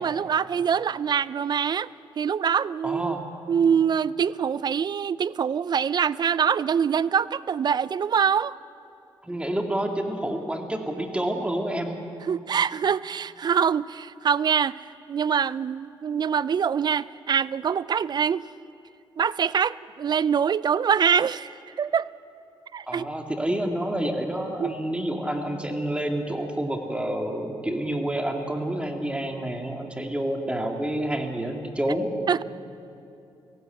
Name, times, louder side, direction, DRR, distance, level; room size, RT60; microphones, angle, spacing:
voice 1, 0.0-1.9 2.2-3.1 3.5-8.5 12.3-18.4 19.2-22.1 22.7-23.1 24.6-24.7 32.3-32.4, right 7 dB, 50° right, 20 dB, 0.4 m, -24 dB
voice 2, 2.8-3.2 9.2-11.9 22.9-32.1, right 1 dB, 10° right, 3 dB, 2.4 m, -28 dB
17.5 x 16.0 x 9.2 m, 2.7 s
supercardioid pair, 60°, 9 cm